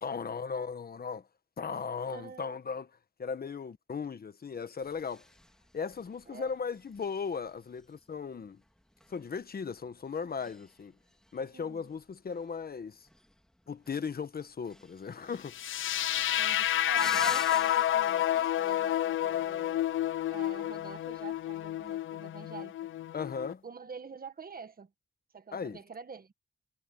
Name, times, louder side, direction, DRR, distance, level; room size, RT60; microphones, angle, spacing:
voice 1, 0.0-1.3 1.6-2.9 3.2-5.2 5.7-8.6 9.1-10.9 11.3-13.1 13.7-16.0 23.1-23.6 25.5-25.8, left 5 dB, 45° left, 1.3 m, -37 dB
voice 2, 2.1-2.5 6.3-6.5 11.5-11.8 16.4-19.9 20.3-22.7 23.6-24.9 25.3-26.3, right 5 dB, 45° right, 1.7 m, -46 dB
sound 1, 4.8-22.0, equal, 5° left, 2.8 m, -51 dB
sound 2, 15.5-23.5, left 12 dB, 75° left, 0.4 m, -30 dB
wide cardioid pair, 100°, 21 cm